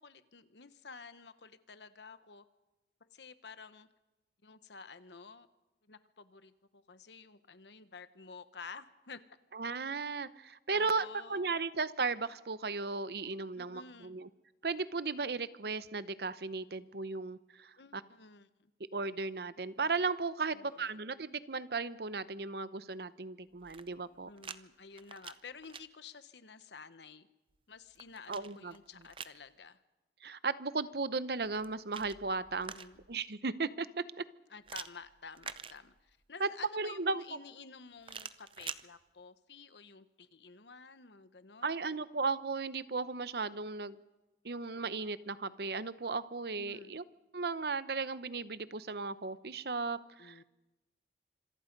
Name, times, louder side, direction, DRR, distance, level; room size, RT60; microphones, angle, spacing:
voice 1, 0.0-2.4 3.1-3.9 4.4-5.5 5.9-9.2 10.7-11.5 13.6-14.2 17.8-18.7 20.5-21.0 24.1-27.3 27.7-29.8 32.6-33.0 34.5-41.8 46.6-46.9 50.2-50.4, left 5 dB, 80° left, 12 dB, 1.1 m, -51 dB
voice 2, 9.5-14.3 14.6-18.0 18.9-24.3 28.3-28.7 30.2-32.7 33.1-34.3 36.4-36.5 36.7-37.2 41.6-44.0 44.4-47.0 47.3-50.4, right 4 dB, 60° right, 15 dB, 0.8 m, -36 dB
sound 1, 23.5-24.6 24.9-25.8 27.5-29.4 31.4-33.2 34.7-36.2 38.0-38.8, right 7 dB, 30° right, 0.7 m, -47 dB
26.5 x 23.0 x 5.3 m, 1.1 s
head